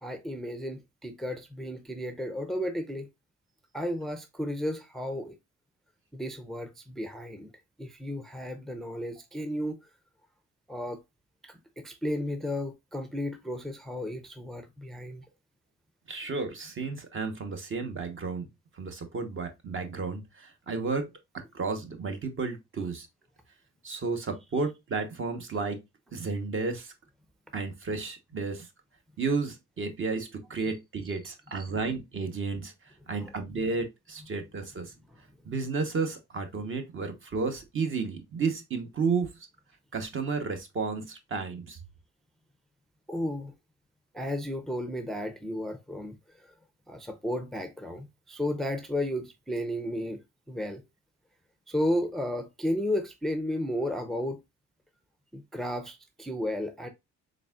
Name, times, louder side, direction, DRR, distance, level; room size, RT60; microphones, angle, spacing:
voice 1, 0.0-3.1 3.7-5.4 6.1-7.5 7.8-9.8 10.7-11.0 11.4-15.2 31.6-31.7 43.1-43.5 44.1-46.5 46.9-50.2 50.5-50.8 51.7-54.4 55.3-56.9, left 1 dB, ahead, 0.5 m, -33 dB
voice 2, 16.1-18.5 18.7-23.1 23.8-25.8 26.1-26.9 27.5-28.7 29.2-32.7 33.1-34.9 35.4-39.5 39.9-41.8, right 4 dB, 45° right, 0.9 m, -32 dB
4.0 x 3.6 x 2.3 m
cardioid pair, 90°, 30 cm